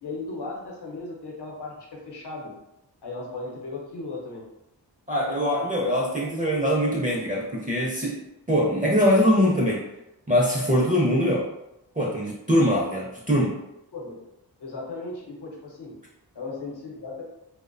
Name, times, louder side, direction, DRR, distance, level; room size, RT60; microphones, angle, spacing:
voice 1, 0.0-2.5 3.0-4.4 13.9-14.2 14.6-15.9 16.3-17.2, left 3 dB, 65° left, -2 dB, 0.8 m, -36 dB
voice 2, 5.1-8.2 8.5-9.8 10.3-11.4 12.0-13.6, equal, 20° right, -4 dB, 0.5 m, -22 dB
2.5 x 2.1 x 2.5 m, 0.90 s
wide cardioid pair, 55°, 43 cm